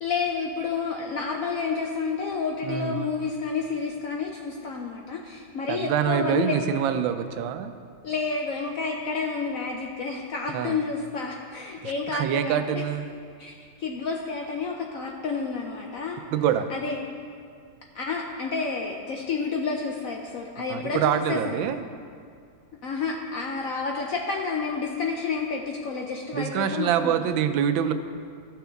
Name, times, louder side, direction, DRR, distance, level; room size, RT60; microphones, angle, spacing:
voice 1, 0.0-6.6 8.0-12.6 13.4-16.2 16.7-17.1 17.9-21.6 22.8-27.1, left 4 dB, 70° left, 1 dB, 0.8 m, -30 dB
voice 2, 2.6-3.0 5.7-7.7 10.5-10.8 11.8-13.0 16.3-16.7 20.7-21.8 26.3-27.9, right 9 dB, 85° right, 9 dB, 1.3 m, -25 dB
14.0 x 6.1 x 3.4 m, 2.2 s
omnidirectional pair, 2.1 m